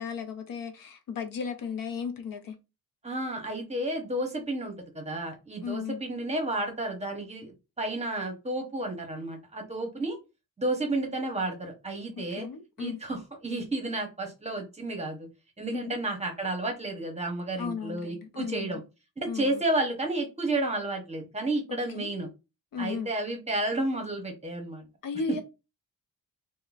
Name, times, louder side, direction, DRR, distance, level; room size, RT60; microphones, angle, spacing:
voice 1, 0.0-2.6 5.6-6.0 12.2-13.0 15.7-16.0 17.6-18.8 19.3-19.6 21.9-22.1 22.7-23.1 25.0-25.4, left 5 dB, 65° left, 0.6 m, -35 dB
voice 2, 3.0-10.2 10.6-12.5 12.8-15.3 15.6-18.8 19.2-22.3 22.8-24.9, right 2 dB, 20° right, 0.8 m, -31 dB
3.6 x 2.1 x 2.4 m
wide cardioid pair, 145°, 37 cm